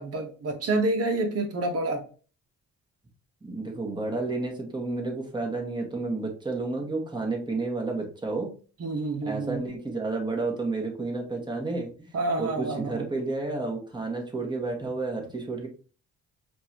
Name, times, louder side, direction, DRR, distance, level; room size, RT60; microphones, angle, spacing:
voice 1, 0.0-2.0 8.8-9.6 12.1-13.1, right 2 dB, 50° right, 5 dB, 1.1 m, -28 dB
voice 2, 3.4-8.5 9.2-12.1 12.4-15.7, right 3 dB, 15° right, 1 dB, 1.5 m, -31 dB
5.4 x 2.6 x 2.8 m, 0.38 s
cardioid pair, 90°, 30 cm